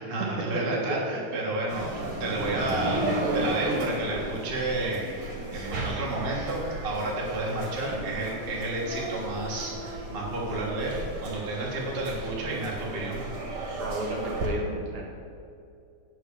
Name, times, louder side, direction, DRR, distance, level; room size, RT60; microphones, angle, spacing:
voice 1, 0.0-3.0 3.3-5.2 5.5-13.2, right 2 dB, 30° right, -4 dB, 1.0 m, -31 dB
sound 1, 1.7-14.5, right 2 dB, 45° right, 2.2 m, -34 dB
voice 2, 13.8-15.0, right 1 dB, 65° right, 0 dB, 2.2 m, -33 dB
8.0 x 6.1 x 6.8 m, 2.5 s
omnidirectional pair, 4.0 m